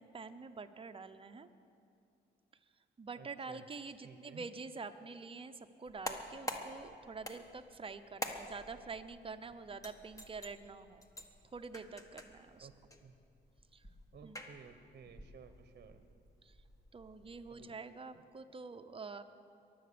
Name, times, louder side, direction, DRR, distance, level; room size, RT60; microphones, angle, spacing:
voice 1, 0.0-1.5 3.0-11.0 11.4-12.7 13.7-13.9 14.2-14.4 16.4-16.6 16.9-19.2, right 4 dB, 25° right, 9 dB, 0.8 m, -47 dB
voice 2, 3.1-3.7 4.0-4.5 12.6-12.7 13.0-13.2 14.1-16.0 17.5-17.8 18.1-18.2, right 6 dB, 50° right, 8 dB, 1.0 m, -55 dB
sound 1, 5.8-17.6, left 1 dB, 15° left, 1.5 m, -49 dB
22.5 x 7.9 x 6.9 m, 2.5 s
cardioid pair, 90°, 20 cm